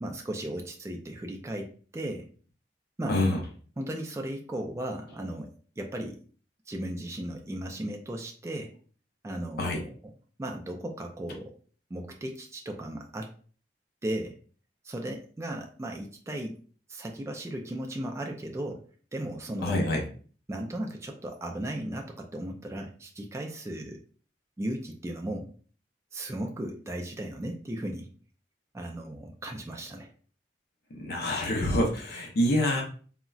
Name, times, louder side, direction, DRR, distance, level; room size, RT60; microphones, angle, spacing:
voice 1, 0.0-2.3 3.0-3.2 3.8-5.5 5.8-6.2 6.7-8.7 9.2-10.1 10.4-11.5 11.9-13.3 14.0-14.4 14.8-16.6 16.9-18.8 19.1-19.9 20.5-24.0 24.6-25.5 26.1-28.1 28.7-30.1, right 1 dB, 15° right, 2 dB, 0.3 m, -36 dB
voice 2, 3.1-3.4 9.6-9.8 19.6-20.0 30.9-32.8, left 1 dB, 60° left, 0 dB, 0.6 m, -26 dB
3.8 x 2.1 x 2.3 m, 0.42 s
head